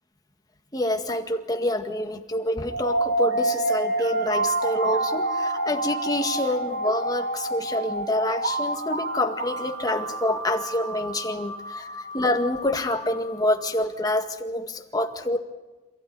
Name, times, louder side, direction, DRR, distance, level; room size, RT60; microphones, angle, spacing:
voice 1, 0.7-15.4, left 1 dB, 20° left, 4 dB, 1.9 m, -27 dB
sound 1, 2.7-13.6, right 2 dB, 65° right, 4.3 m, -28 dB
28.0 x 15.5 x 9.5 m, 1.1 s
head